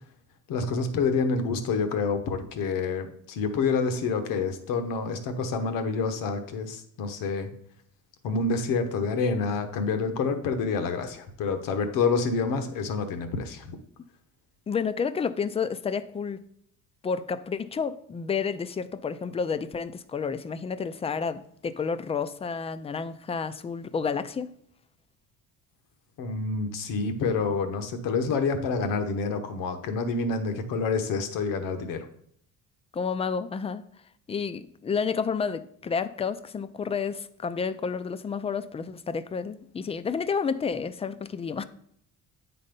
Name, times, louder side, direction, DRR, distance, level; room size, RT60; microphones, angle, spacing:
voice 1, 0.5-7.5 8.2-13.8 26.2-32.0, left 4 dB, 80° left, 1.2 m, -28 dB
voice 2, 14.7-16.4 17.0-24.5 32.9-33.8 34.3-41.6, left 6 dB, 20° left, 0.4 m, -30 dB
8.6 x 4.2 x 5.2 m
cardioid pair, 130°, 33 cm